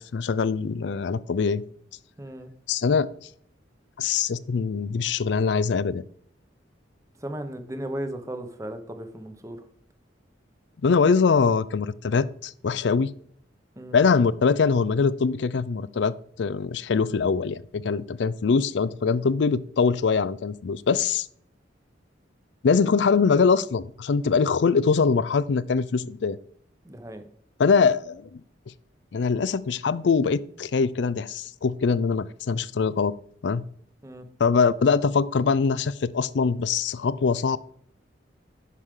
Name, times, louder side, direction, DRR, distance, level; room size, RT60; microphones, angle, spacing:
voice 1, 0.0-1.6 2.7-3.1 4.0-6.0 10.8-13.1 13.9-21.3 22.6-26.4 27.6-28.4 29.1-33.1 33.4-33.6 34.4-37.6, left 5 dB, 70° left, 18 dB, 0.4 m, -23 dB
voice 2, 2.2-2.5 7.2-9.6 13.8-14.0 26.8-27.2 34.0-34.3, right 1 dB, 15° right, 7 dB, 0.9 m, -36 dB
9.8 x 6.3 x 3.7 m, 0.63 s
head